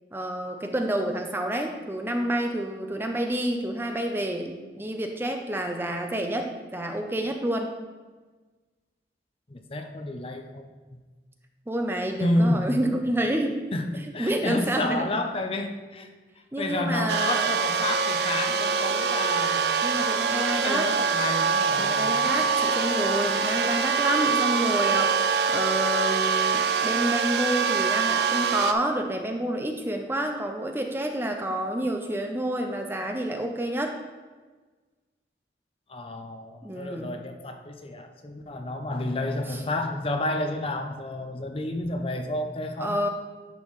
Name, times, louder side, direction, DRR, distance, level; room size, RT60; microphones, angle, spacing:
voice 1, 0.1-7.7 11.7-13.6 14.2-15.0 16.5-17.5 19.8-20.9 21.8-34.0 36.6-37.1 39.5-39.6 42.8-43.1, right 1 dB, 15° right, 4 dB, 0.5 m, -28 dB
voice 2, 9.5-11.0 12.2-12.8 13.7-16.1 16.6-19.7 20.3-22.3 35.9-43.0, left 1 dB, 30° left, 6 dB, 0.5 m, -30 dB
sound 1, 17.1-28.7, right 5 dB, 65° right, 0.5 m, -24 dB
10.5 x 5.5 x 3.1 m, 1.3 s
head